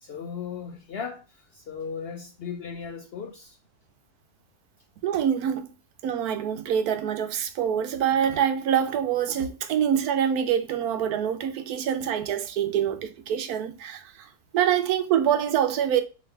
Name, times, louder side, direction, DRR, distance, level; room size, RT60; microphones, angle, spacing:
voice 1, 0.0-3.6, left 6 dB, 65° left, 0.6 m, -37 dB
voice 2, 5.0-5.7 6.0-14.3 14.5-16.0, right 9 dB, 90° right, 1.2 m, -25 dB
3.4 x 3.0 x 4.5 m
omnidirectional pair, 1.6 m